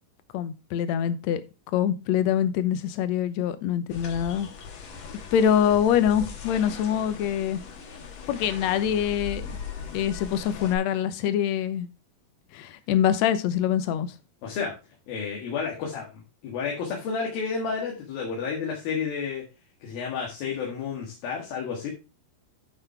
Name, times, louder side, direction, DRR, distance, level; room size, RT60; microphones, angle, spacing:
voice 1, 0.3-1.4 1.7-4.5 5.3-7.6 8.3-9.5 9.9-11.9 12.5-14.1, left 9 dB, 70° left, 12 dB, 1.7 m, -24 dB
sound 1, 3.9-10.8, left 5 dB, 55° left, 2.4 m, -39 dB
voice 2, 14.4-14.7 15.1-19.5 19.8-21.9, left 5 dB, 90° left, -1 dB, 3.7 m, -31 dB
9.9 x 5.7 x 4.6 m, 0.29 s
omnidirectional pair, 4.0 m